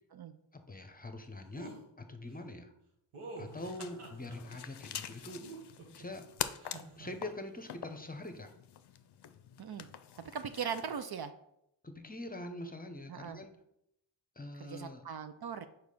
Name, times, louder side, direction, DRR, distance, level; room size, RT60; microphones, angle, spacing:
voice 1, 0.5-2.7 3.4-5.5 6.0-6.3 7.0-8.5 11.8-13.5 14.4-15.0, left 1 dB, 20° left, 6 dB, 0.8 m, -44 dB
sound 1, 1.5-1.8 3.1-4.4 5.1-6.1 6.6-7.1, right 2 dB, 85° right, 1.5 m, -47 dB
sound 2, 3.5-11.0, left 9 dB, 55° left, 0.6 m, -45 dB
voice 2, 10.2-11.3 13.1-13.4 14.6-15.7, right 7 dB, 50° right, 10 dB, 0.6 m, -39 dB
4.8 x 4.7 x 5.4 m, 0.79 s
cardioid pair, 55°, 48 cm